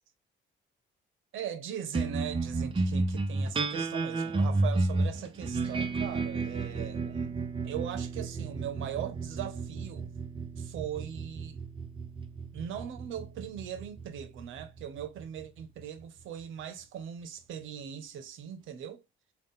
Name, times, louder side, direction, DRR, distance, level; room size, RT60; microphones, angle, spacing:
voice 1, 1.3-10.1 10.6-11.6 12.5-19.0, right 9 dB, 80° right, 0.8 m, -40 dB
sound 1, 1.9-16.6, right 3 dB, 25° right, 0.9 m, -33 dB
3.9 x 2.4 x 3.6 m
cardioid pair, 90°, 20 cm